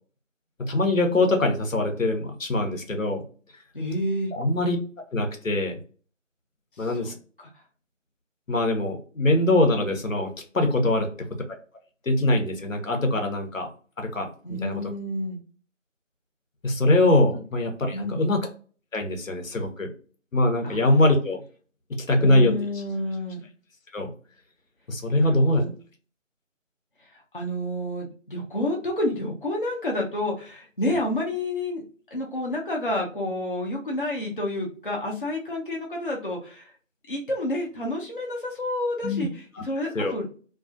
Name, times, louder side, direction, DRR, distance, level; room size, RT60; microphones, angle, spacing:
voice 1, 0.6-3.2 4.3-4.8 5.1-5.7 6.8-7.1 8.5-10.3 10.5-11.3 12.1-13.7 14.0-14.3 14.6-14.8 16.6-18.4 18.9-19.9 20.3-21.4 21.9-22.5 23.9-24.1 24.9-25.6 39.0-39.3 39.9-40.1, left 2 dB, 90° left, 4 dB, 0.9 m, -22 dB
voice 2, 3.7-4.3 6.8-7.1 7.4-7.5 14.4-15.4 17.9-18.2 20.6-20.8 22.2-23.4 25.1-25.7 27.1-31.8 32.1-36.7 37.1-40.3, left 1 dB, 45° left, -1 dB, 0.5 m, -29 dB
2.3 x 2.3 x 2.5 m, 0.40 s
figure-of-eight pair, 170°, 38 cm